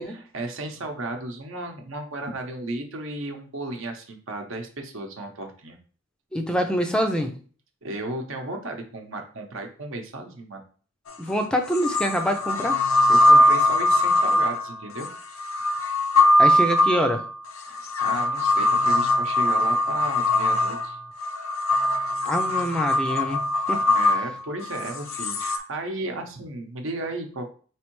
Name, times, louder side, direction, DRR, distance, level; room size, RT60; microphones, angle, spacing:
voice 1, 0.0-5.8 7.8-10.6 13.1-15.1 17.6-21.0 23.8-27.5, right 2 dB, 75° right, 4 dB, 0.8 m, -34 dB
voice 2, 6.3-7.3 11.2-12.8 16.4-17.2 22.3-23.8, equal, 5° left, 4 dB, 0.4 m, -25 dB
sound 1, 11.1-11.2 11.7-25.6, left 1 dB, 85° left, 0.5 m, -21 dB
4.4 x 3.2 x 3.0 m, 0.41 s
head